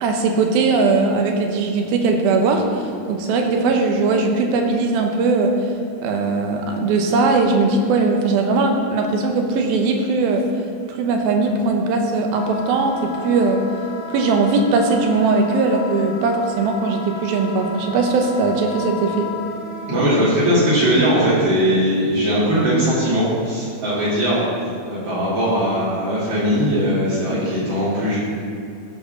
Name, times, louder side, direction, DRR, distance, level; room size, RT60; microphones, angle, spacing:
voice 1, 0.0-5.7 6.0-10.5 10.9-13.7 14.1-19.3, right 3 dB, 80° right, 3 dB, 2.7 m, -19 dB
Wind instrument woodwind instrument, 12.3-20.1, left 4 dB, 75° left, 3.2 m, -34 dB
voice 2, 19.9-24.4 24.9-28.2, equal, 50° right, -10 dB, 3.9 m, -19 dB
15.0 x 5.3 x 6.2 m, 2.4 s
omnidirectional pair, 4.3 m